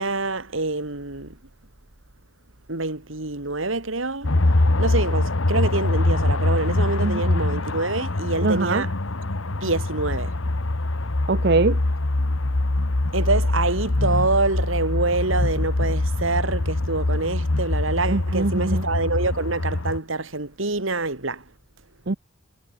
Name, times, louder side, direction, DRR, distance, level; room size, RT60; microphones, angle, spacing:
voice 1, 0.0-1.4 2.7-4.3 4.8-8.9 9.5-10.3 13.1-21.4, right 3 dB, 75° right, 2.8 m, -26 dB
sound 1, 4.2-20.0, left 2 dB, 80° left, 1.4 m, -23 dB
voice 2, 7.0-7.4 8.4-8.8 11.3-11.8 18.1-18.9 22.1-22.2, right 3 dB, 55° right, 0.8 m, -23 dB
head